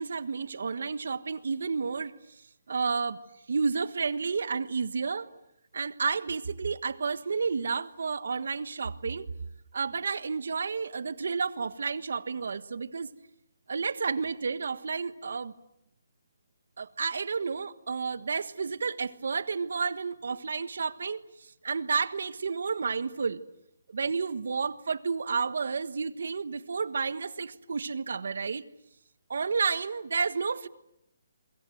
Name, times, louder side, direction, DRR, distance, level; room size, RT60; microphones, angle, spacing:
voice 1, 0.0-2.1 2.7-3.2 3.5-5.3 5.7-9.2 9.7-13.1 13.7-15.5 16.8-23.4 23.9-28.6 29.3-30.7, right 5 dB, 70° right, 14 dB, 1.4 m, -31 dB
28.0 x 23.0 x 7.9 m, 0.80 s
hypercardioid pair, 170°, 0 cm